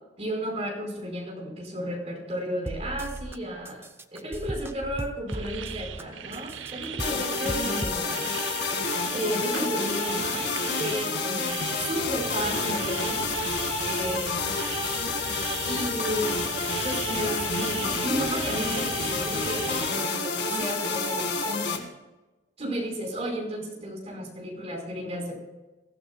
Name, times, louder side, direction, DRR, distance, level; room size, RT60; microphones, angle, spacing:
voice 1, 0.2-3.9 4.1-8.3 9.1-13.3 13.8-14.4 15.7-16.4 16.8-21.9 22.6-25.4, equal, 35° right, -1 dB, 4.7 m, -33 dB
sound 1, 2.7-3.4 3.6-6.0 6.3-8.0, right 1 dB, 10° right, 0.5 m, -36 dB
sound 2, 5.3-19.9, right 7 dB, 85° right, 0.8 m, -38 dB
sound 3, 7.0-21.8, left 4 dB, 65° left, 2.1 m, -29 dB
22.0 x 15.0 x 2.3 m, 1.1 s
head